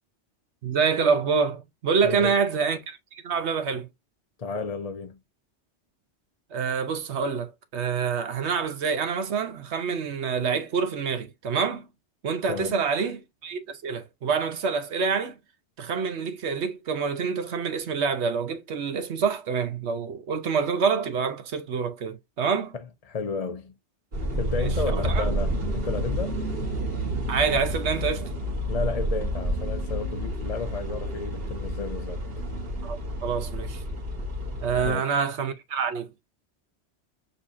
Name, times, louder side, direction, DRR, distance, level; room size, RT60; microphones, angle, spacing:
voice 1, 0.6-3.9 6.5-11.9 12.2-15.4 15.8-22.7 24.6-25.2 27.3-28.3 32.8-33.8 34.6-36.1, right 5 dB, 75° right, 1.1 m, -27 dB
voice 2, 4.4-5.2 12.5-12.8 23.1-23.7 24.3-26.4 28.7-32.2 34.8-35.0, left 4 dB, 40° left, 0.6 m, -32 dB
sound 1, 24.1-34.9, right 1 dB, 55° right, 2.0 m, -29 dB
6.9 x 2.7 x 2.6 m
omnidirectional pair, 1.1 m